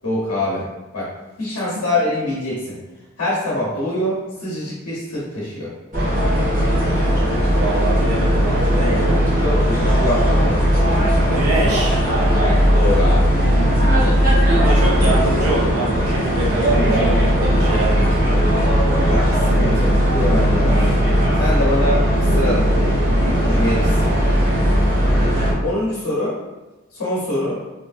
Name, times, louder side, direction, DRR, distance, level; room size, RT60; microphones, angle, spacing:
voice 1, 0.0-0.7 0.9-1.1 1.4-2.8 3.2-5.7 8.8-10.6 10.9-11.4 12.3-13.3 18.9-20.9 21.4-24.0 25.6-26.4 26.9-27.6, left 1 dB, 90° left, -7 dB, 0.8 m, -24 dB
sound 1, 5.9-25.5, equal, 40° right, 1.0 m, -17 dB
voice 2, 7.5-9.2 11.3-12.0 13.4-14.2 14.5-18.1, right 2 dB, 75° right, -4 dB, 0.5 m, -25 dB
2.9 x 2.5 x 2.4 m, 1.1 s
head